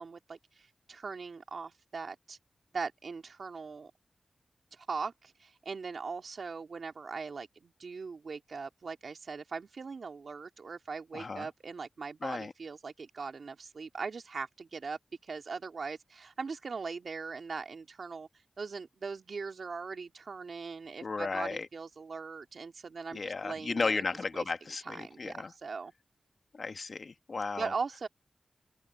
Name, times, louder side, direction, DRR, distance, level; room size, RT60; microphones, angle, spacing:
voice 1, 0.0-2.4 2.7-3.9 4.7-18.3 18.6-24.1 24.3-24.5 24.8-25.9 27.6-28.1, right 4 dB, 75° right, 2.4 m, -40 dB
voice 2, 11.1-11.5 12.2-12.5 21.0-21.7 23.1-25.5 26.5-27.7, left 4 dB, 60° left, 1.7 m, -34 dB
open air
cardioid pair, 50°, 0 cm